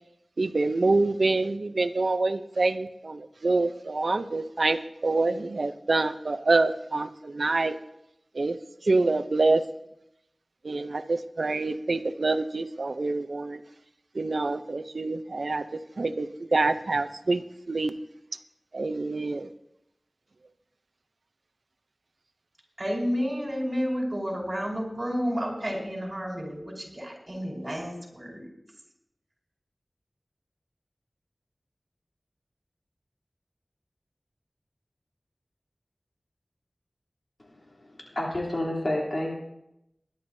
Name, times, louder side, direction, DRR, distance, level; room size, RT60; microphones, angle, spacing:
voice 1, 0.4-7.8 8.3-8.6 8.8-9.6 10.6-13.6 14.1-15.6 16.0-17.9 18.7-19.5, right 3 dB, 85° right, 11 dB, 0.6 m, -26 dB
voice 2, 22.8-28.5, equal, 30° right, -3 dB, 5.1 m, -31 dB
voice 3, 37.6-39.3, left 1 dB, 65° left, -2 dB, 3.2 m, -30 dB
21.0 x 11.5 x 2.7 m, 0.85 s
wide cardioid pair, 45°, 0 cm